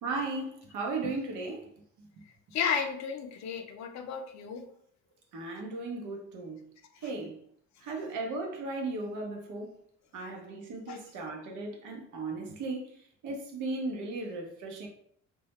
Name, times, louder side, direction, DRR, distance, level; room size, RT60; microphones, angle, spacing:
voice 1, 0.0-1.7 2.0-2.1 5.3-6.7 7.0-7.4 7.8-9.7 10.1-12.9 13.2-14.9, right 3 dB, 80° right, 1 dB, 0.7 m, -36 dB
voice 2, 2.5-4.7 10.9-11.0, left 6 dB, 65° left, 5 dB, 0.5 m, -33 dB
2.2 x 2.0 x 2.8 m, 0.64 s
cardioid pair, 90°, 30 cm